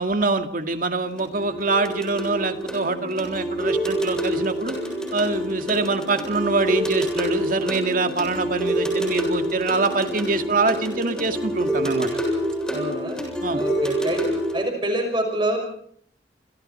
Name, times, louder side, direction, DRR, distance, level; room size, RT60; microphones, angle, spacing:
voice 1, 0.0-4.8 5.1-12.1 13.4-13.6, right 3 dB, 50° right, 6 dB, 2.2 m, -24 dB
sound 1, 1.0-14.6, right 1 dB, 5° left, 7.6 m, -27 dB
voice 2, 12.7-13.2 13.5-14.2 14.5-15.6, right 1 dB, 25° right, 3 dB, 5.9 m, -26 dB
29.0 x 27.0 x 4.4 m, 0.62 s
head